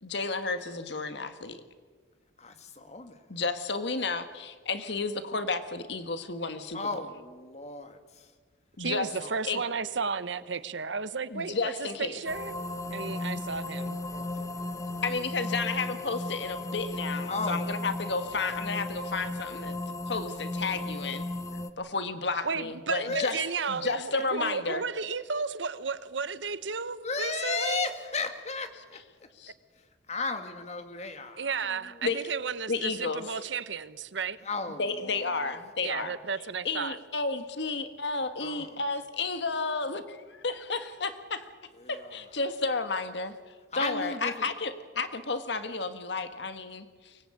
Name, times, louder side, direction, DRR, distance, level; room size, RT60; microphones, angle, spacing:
voice 1, 0.0-1.6 3.3-6.9 8.8-9.1 9.4-9.6 11.3-12.2 15.0-19.8 20.1-21.2 21.8-23.4 23.7-24.8 29.4-29.5 32.0-32.2 32.7-33.4 34.8-36.1 36.6-41.4 41.9-43.3 43.8-47.2, left 3 dB, 65° left, 10 dB, 1.6 m, -32 dB
voice 2, 2.4-3.3 6.7-8.3 9.2-9.4 13.1-13.3 14.1-15.0 17.3-17.7 18.3-18.4 20.7-20.9 21.4-21.6 23.0-23.3 23.8-24.2 27.0-29.0 30.1-32.1 34.4-35.6 35.9-36.2 38.4-38.8 41.7-42.2 43.7-44.5, left 4 dB, 35° left, 7 dB, 2.1 m, -36 dB
voice 3, 8.8-12.5 12.9-14.0 22.4-27.9 31.4-34.4 35.8-37.0, right 5 dB, 80° right, 15 dB, 1.0 m, -33 dB
sound 1, 12.3-21.7, left 2 dB, 15° left, 1.0 m, -35 dB
24.0 x 19.5 x 8.9 m, 1.5 s
head